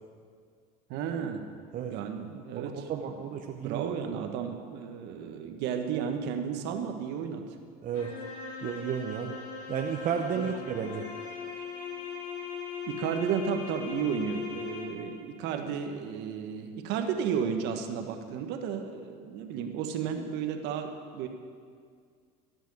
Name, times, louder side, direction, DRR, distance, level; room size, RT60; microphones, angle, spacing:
voice 1, 0.9-1.4 1.9-2.9 3.6-7.4 10.3-10.5 12.9-21.3, right 7 dB, 65° right, 5 dB, 1.4 m, -33 dB
voice 2, 2.6-3.8 7.8-8.1 8.6-9.4 9.7-11.1, right 7 dB, 45° right, 3 dB, 1.0 m, -32 dB
sound 1, 7.9-15.2, left 6 dB, 85° left, 2.8 m, -39 dB
15.0 x 6.2 x 8.5 m, 2.1 s
supercardioid pair, 90°, 19 cm